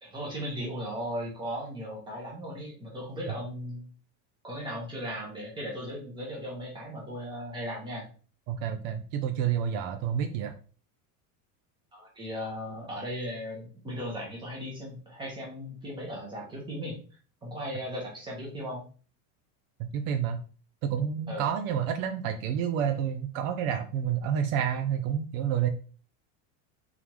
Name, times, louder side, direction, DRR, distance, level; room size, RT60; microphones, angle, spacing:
voice 1, 0.0-3.8 4.4-8.0 11.9-17.0 17.4-18.8 21.3-21.5, equal, 10° right, -3 dB, 1.1 m, -37 dB
voice 2, 8.5-10.5 19.9-20.4 20.8-25.7, right 8 dB, 65° right, 8 dB, 0.6 m, -29 dB
3.7 x 3.6 x 3.0 m, 0.39 s
cardioid pair, 170°, 43 cm